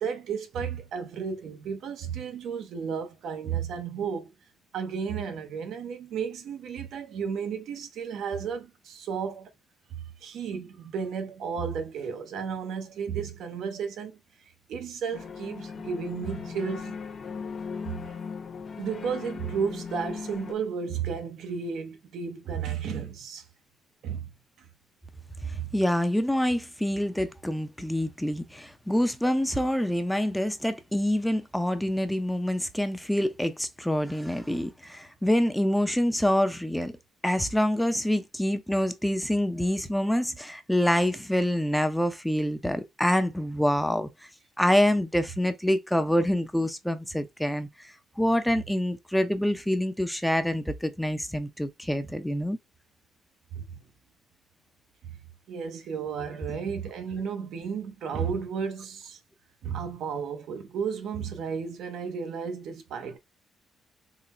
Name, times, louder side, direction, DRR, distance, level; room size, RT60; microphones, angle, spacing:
voice 1, 0.0-4.3 4.7-9.5 10.2-14.2 14.7-17.0 17.8-18.1 18.8-23.4 24.0-24.3 24.6-24.7 25.5-25.7 53.6-53.7 55.5-59.2 59.6-63.2, right 6 dB, 75° right, 0.7 m, -33 dB
sound 1, 15.1-20.5, left 5 dB, 45° left, 0.6 m, -38 dB
voice 2, 25.5-36.9 37.2-44.1 44.6-52.6, equal, 5° left, 0.6 m, -26 dB
3.8 x 2.0 x 4.2 m
cardioid pair, 90°, 0 cm